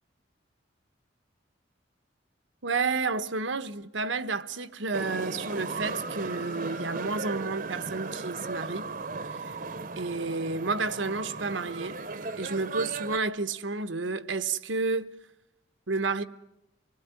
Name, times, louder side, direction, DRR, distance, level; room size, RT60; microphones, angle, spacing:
voice 1, 2.6-8.9 9.3-9.5 10.0-12.0 12.4-15.1 15.9-16.2, right 4 dB, 80° right, 1.2 m, -31 dB
sound 1, 4.9-13.2, right 3 dB, 45° right, 0.9 m, -36 dB
26.0 x 20.0 x 9.7 m
head